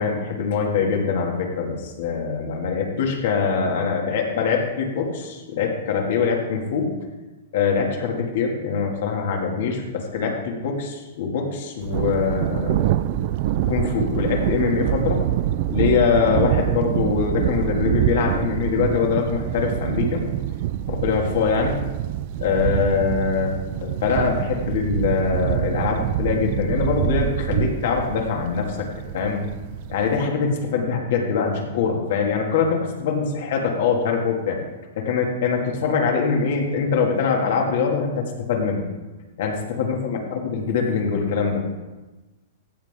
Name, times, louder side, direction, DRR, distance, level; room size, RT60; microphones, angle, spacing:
voice 1, 0.0-6.9 7.5-12.9 13.6-15.2 15.7-20.2 20.9-21.8 22.4-28.9 29.1-29.5 29.9-34.6 35.0-38.9 39.4-41.6, left 5 dB, 65° left, 1 dB, 2.6 m, -23 dB
Thunder, 11.8-30.2, right 12 dB, 55° right, 0.5 m, -25 dB
15.0 x 7.9 x 3.8 m, 1.2 s
hypercardioid pair, 125°, 0 cm